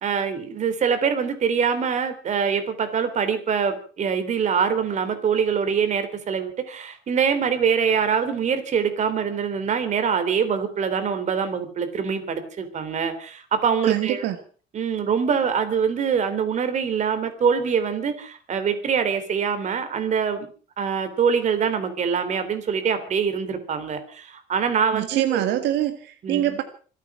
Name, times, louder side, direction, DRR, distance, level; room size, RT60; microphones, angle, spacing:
voice 1, 0.0-14.3 14.7-20.5 20.8-25.4 26.2-26.6, right 6 dB, 45° right, 9 dB, 3.5 m, -24 dB
voice 2, 13.8-14.4 24.9-26.6, right 13 dB, 80° right, 8 dB, 1.8 m, -24 dB
26.0 x 9.2 x 6.1 m, 0.41 s
cardioid pair, 140°, 18 cm